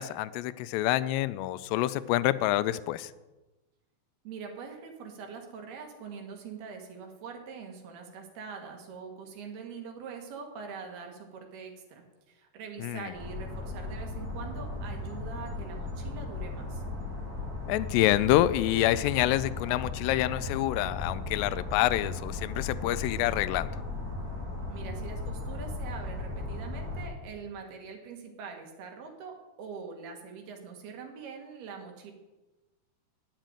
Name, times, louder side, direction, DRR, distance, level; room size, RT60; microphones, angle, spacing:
voice 1, 0.0-3.1 12.8-13.1 17.7-23.8, left 15 dB, 90° left, 16 dB, 2.7 m, -27 dB
voice 2, 4.3-16.8 24.7-32.1, right 5 dB, 70° right, 3 dB, 3.5 m, -43 dB
sound 1, 13.1-27.1, left 3 dB, 30° right, 2.1 m, -36 dB
10.0 x 7.7 x 9.0 m, 1.1 s
omnidirectional pair, 4.8 m